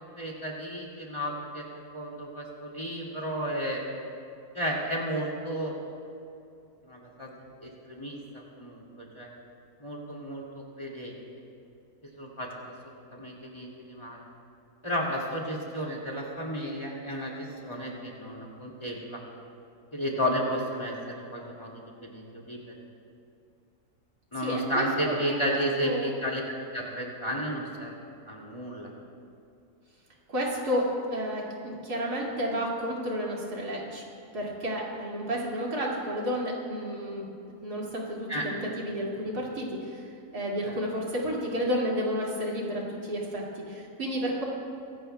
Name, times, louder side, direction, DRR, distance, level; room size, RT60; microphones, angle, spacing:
voice 1, 0.2-1.6 1.9-3.8 4.5-5.8 6.9-7.3 7.6-9.3 9.8-11.1 12.2-14.2 14.8-19.2 19.9-22.6 24.3-26.4 26.7-27.9 28.3-28.9 38.3-38.5 40.6-40.8, equal, 20° left, -3 dB, 2.2 m, -33 dB
voice 2, 24.4-25.3 25.8-26.1 30.3-34.0 34.3-37.3 37.6-40.1 40.3-44.4, equal, 85° right, -3 dB, 3.0 m, -31 dB
23.0 x 17.5 x 2.3 m, 2.5 s
omnidirectional pair, 1.6 m